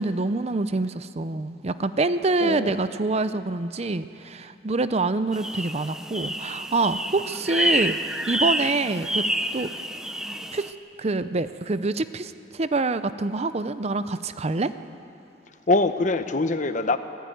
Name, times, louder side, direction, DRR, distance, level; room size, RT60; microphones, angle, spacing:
voice 1, 0.0-8.0 8.3-9.3 9.5-9.7 10.5-10.7 11.0-14.7, right 3 dB, 35° right, 12 dB, 0.6 m, -26 dB
voice 2, 2.4-2.8 15.7-17.0, left 2 dB, 45° left, 10 dB, 0.9 m, -23 dB
sound 1, 5.3-10.7, equal, 5° right, 0.8 m, -28 dB
24.0 x 15.0 x 9.3 m, 2.7 s
head